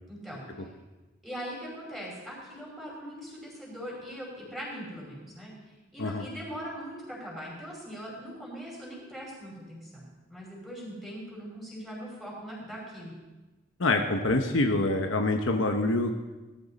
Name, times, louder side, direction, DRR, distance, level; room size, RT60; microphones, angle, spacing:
voice 1, 0.1-0.4 1.2-5.5 5.9-13.1, equal, ahead, -5 dB, 5.4 m, -41 dB
voice 2, 13.8-16.1, left 2 dB, 65° left, 4 dB, 1.0 m, -25 dB
19.0 x 13.5 x 4.2 m, 1.1 s
head